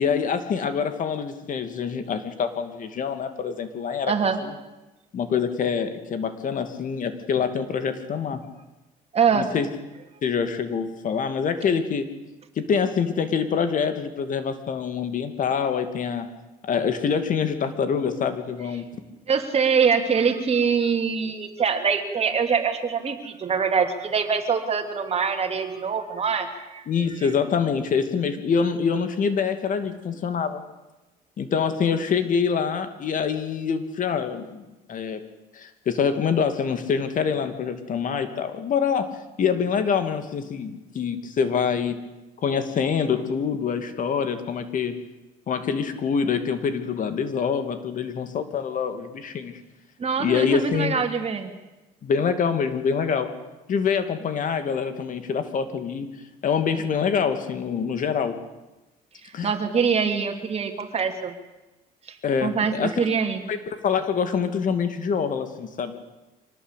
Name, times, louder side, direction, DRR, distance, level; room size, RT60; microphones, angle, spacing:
voice 1, 0.0-4.1 4.4-4.5 5.1-8.4 9.3-9.7 10.2-12.1 12.6-16.3 16.6-18.9 26.9-30.6 31.4-34.6 34.9-35.2 35.5-39.1 39.4-42.0 42.4-45.0 45.5-49.5 50.2-51.1 52.0-53.3 53.7-56.1 56.4-58.4 59.3-59.5 62.2-63.0 63.5-66.0, left 6 dB, 50° left, 9 dB, 2.7 m, -25 dB
voice 2, 4.1-4.4 9.1-9.5 19.3-26.9 50.0-51.5 59.4-61.3 62.1-62.2 62.4-63.4, right 6 dB, 35° right, 6 dB, 3.1 m, -24 dB
25.0 x 18.5 x 8.5 m, 1.1 s
cardioid pair, 110°, 17 cm